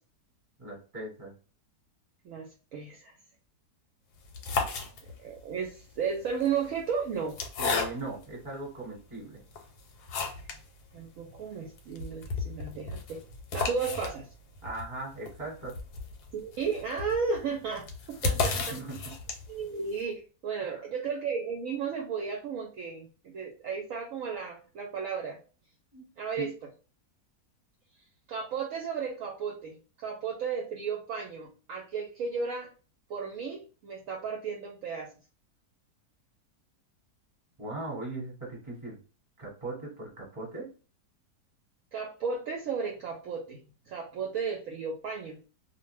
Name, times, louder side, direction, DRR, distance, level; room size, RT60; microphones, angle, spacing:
voice 1, 0.6-1.3 7.6-9.4 14.6-15.7 18.5-19.1 20.6-20.8 25.9-26.0 26.4-26.5 37.6-39.0 39.4-40.7, right 2 dB, 20° right, -3 dB, 1.1 m, -39 dB
voice 2, 2.2-3.1 5.2-7.4 10.9-13.2 13.5-14.3 16.3-18.8 19.5-25.4 26.2-26.5 28.3-32.7 33.1-35.1 41.9-43.6 43.9-45.4, right 6 dB, 70° right, 1 dB, 0.9 m, -34 dB
sound 1, 4.2-5.4 6.3-8.3 8.9-9.0 9.5-10.7 11.0-11.1 11.3-11.4 11.8-19.7, left 4 dB, 80° left, 1.2 m, -34 dB
2.5 x 2.1 x 3.1 m, 0.36 s
omnidirectional pair, 1.7 m